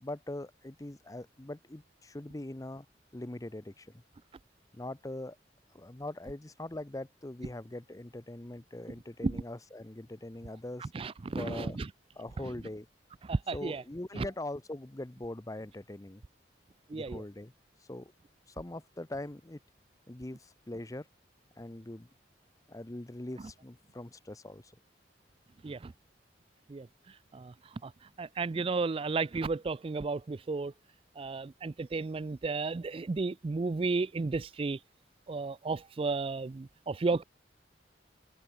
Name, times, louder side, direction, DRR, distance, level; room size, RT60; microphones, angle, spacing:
voice 1, 0.0-2.9 3.1-3.9 4.7-5.4 5.7-10.9 11.4-11.8 12.2-12.9 13.5-16.2 16.9-17.5 17.8-18.1 18.5-19.6 20.1-21.1 21.6-22.1 22.7-24.7, left 1 dB, 20° left, 0.7 m, -42 dB
voice 2, 10.9-11.9 13.3-13.8 14.2-14.3 16.9-17.2 25.6-25.9 26.7-26.9 27.3-27.5 27.8-27.9 28.2-30.7 31.2-34.8 35.3-37.2, right 3 dB, 30° right, 0.4 m, -33 dB
head